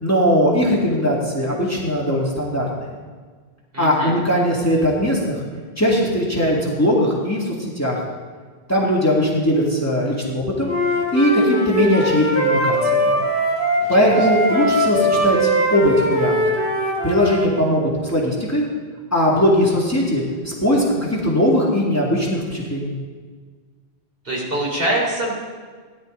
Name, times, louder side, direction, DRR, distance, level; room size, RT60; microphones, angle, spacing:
voice 1, 0.0-2.9 3.8-5.4 5.8-8.0 8.7-10.7 11.1-13.1 13.9-16.6 17.0-18.6 19.1-22.9, equal, 15° left, -4 dB, 2.3 m, -19 dB
voice 2, 3.7-4.2 13.8-14.2 24.2-25.3, right 1 dB, 55° right, -3 dB, 3.8 m, -24 dB
Wind instrument woodwind instrument, 10.6-17.5, equal, 75° right, 3.3 m, -21 dB
17.5 x 11.5 x 3.9 m, 1.5 s
omnidirectional pair, 1.1 m